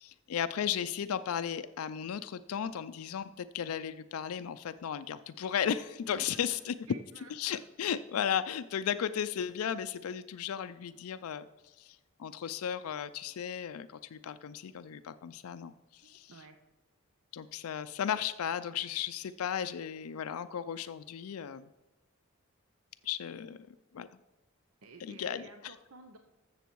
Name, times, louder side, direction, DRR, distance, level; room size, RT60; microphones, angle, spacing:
voice 1, 0.0-6.7 7.3-16.3 17.3-21.7 23.0-23.6 23.9-24.1 25.0-25.7, left 8 dB, 85° left, 12 dB, 0.4 m, -35 dB
voice 2, 6.9-7.6 16.0-16.6 24.8-26.2, right 3 dB, 80° right, 6 dB, 0.8 m, -53 dB
14.0 x 7.1 x 4.6 m, 1.1 s
head